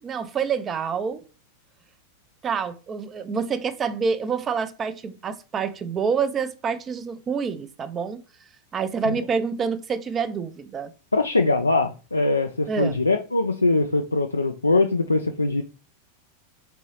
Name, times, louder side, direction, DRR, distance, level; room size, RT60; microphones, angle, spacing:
voice 1, 0.0-1.2 2.4-8.2 8.7-10.9 12.7-13.0, right 6 dB, 25° right, 0.5 m, -27 dB
voice 2, 11.1-15.6, left 3 dB, 80° left, 0.3 m, -22 dB
4.5 x 3.0 x 3.1 m
figure-of-eight pair, 90°, 0 cm